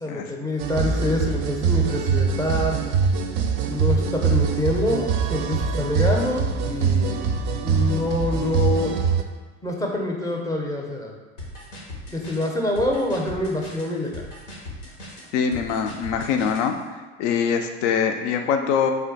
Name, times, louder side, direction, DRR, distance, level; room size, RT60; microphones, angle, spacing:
voice 1, 0.0-2.8 3.7-7.3 7.6-8.9 9.6-11.2 12.1-14.2, left 1 dB, 10° left, 0 dB, 0.5 m, -26 dB
sound 1, 0.6-9.2, right 5 dB, 45° right, 0.4 m, -23 dB
sound 2, 11.4-16.7, left 1 dB, 90° left, 0.9 m, -38 dB
voice 2, 15.3-16.8 17.2-18.9, left 7 dB, 70° left, 5 dB, 0.5 m, -23 dB
3.3 x 2.2 x 3.9 m, 1.3 s
hypercardioid pair, 75°, 37 cm